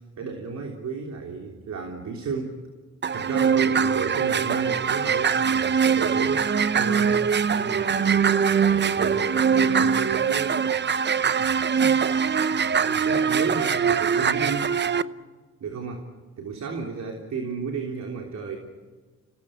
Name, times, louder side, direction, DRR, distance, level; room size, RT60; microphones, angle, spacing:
voice 1, 0.2-2.6 3.1-7.2 7.5-10.8 11.7-12.0 12.7-14.8 15.6-16.0 16.4-18.6, right 5 dB, 65° right, 2 dB, 3.5 m, -33 dB
sound 1, 3.0-15.0, right 6 dB, 35° right, 0.8 m, -22 dB
29.5 x 18.5 x 9.0 m, 1.4 s
cardioid pair, 80°, 30 cm